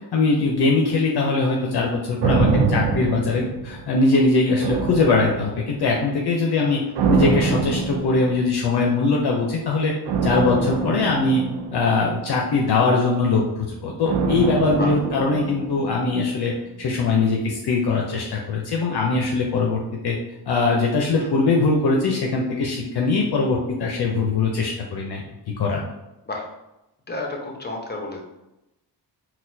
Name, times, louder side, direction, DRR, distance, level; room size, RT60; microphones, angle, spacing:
voice 1, 0.1-6.8 7.1-9.9 10.2-11.4 11.7-16.5 16.8-20.2 20.5-25.2 25.6-25.8, left 3 dB, 60° left, -1 dB, 0.6 m, -21 dB
sound 1, 2.2-4.1 4.6-5.9 6.9-8.7 10.1-12.5 14.1-16.2 16.5-16.6, right 4 dB, 75° right, 0.6 m, -24 dB
voice 2, 27.1-28.2, left 2 dB, 25° left, 0 dB, 0.8 m, -31 dB
4.0 x 2.2 x 2.6 m, 0.93 s
cardioid pair, 60°, 43 cm